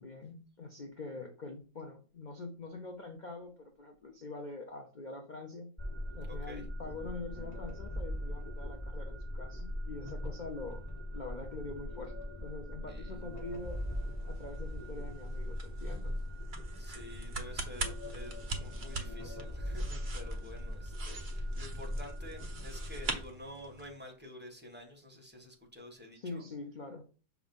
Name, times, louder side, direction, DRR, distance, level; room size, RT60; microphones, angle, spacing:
voice 1, 0.0-5.7 6.1-10.9 11.1-12.2 12.4-13.8 14.2-16.1 26.1-27.1, left 3 dB, 70° left, 3 dB, 0.4 m, -44 dB
sound 1, 5.8-23.2, left 1 dB, 10° left, 2.6 m, -40 dB
voice 2, 6.3-6.7 12.9-13.1 16.7-26.4, left 1 dB, 5° right, 0 dB, 1.2 m, -50 dB
sound 2, 13.2-24.0, right 3 dB, 50° right, 0.6 m, -44 dB
6.0 x 3.0 x 5.3 m, 0.37 s
omnidirectional pair, 1.9 m